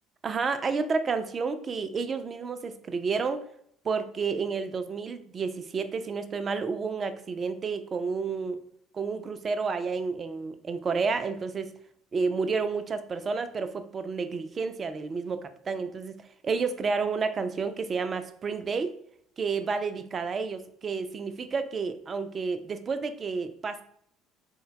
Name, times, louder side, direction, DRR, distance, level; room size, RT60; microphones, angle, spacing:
voice 1, 0.2-3.4 3.8-8.6 8.9-11.7 12.1-16.2 16.4-18.9 19.4-23.8, right 4 dB, 30° right, 10 dB, 0.4 m, -30 dB
3.8 x 2.2 x 3.9 m, 0.67 s
figure-of-eight pair, 60°, 0 cm